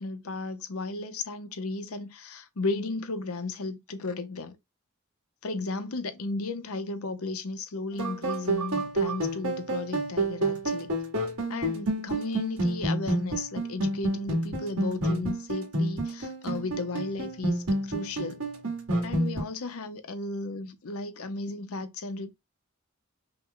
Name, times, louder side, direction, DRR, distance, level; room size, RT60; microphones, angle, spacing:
voice 1, 0.0-4.6 5.4-10.9 11.5-18.4 19.0-22.3, left 3 dB, 80° left, 0.8 m, -34 dB
sound 1, 7.9-19.4, right 1 dB, 75° right, 2.2 m, -29 dB
5.5 x 2.2 x 3.8 m
head